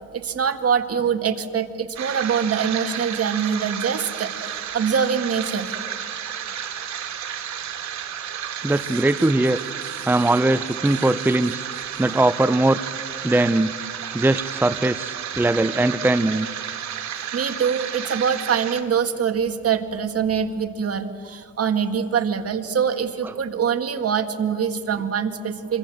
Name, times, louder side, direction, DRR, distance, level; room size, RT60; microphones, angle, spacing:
voice 1, 0.1-5.7 17.3-25.8, right 7 dB, 50° right, 7 dB, 2.0 m, -24 dB
sound 1, 2.0-18.8, right 9 dB, 65° right, 2.5 m, -32 dB
voice 2, 8.6-9.6 10.0-11.6 12.0-12.8 13.2-13.7 14.1-16.5, right 2 dB, 5° right, 13 dB, 0.6 m, -20 dB
25.5 x 25.5 x 7.9 m, 2.2 s
cardioid pair, 90°, 30 cm